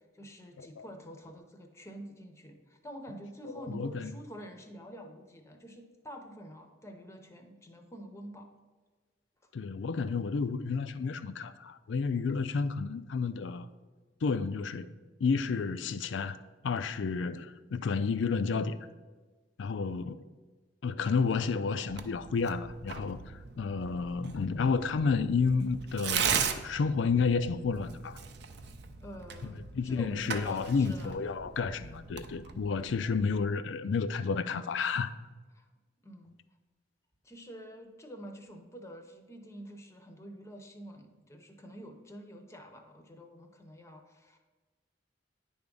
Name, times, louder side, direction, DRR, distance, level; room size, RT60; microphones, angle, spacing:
voice 1, 0.1-8.5 29.0-31.2 31.7-32.1 35.5-35.7 36.0-36.3 37.2-44.4, equal, 15° left, 0.7 m, -47 dB
voice 2, 3.6-4.1 9.5-13.7 14.2-14.9 15.2-16.4 16.6-18.8 19.6-20.2 20.8-23.2 23.6-28.2 29.7-35.1, left 5 dB, 80° left, 0.4 m, -31 dB
Tearing, 21.9-33.4, right 7 dB, 60° right, 0.5 m, -38 dB
9.6 x 3.5 x 5.3 m
head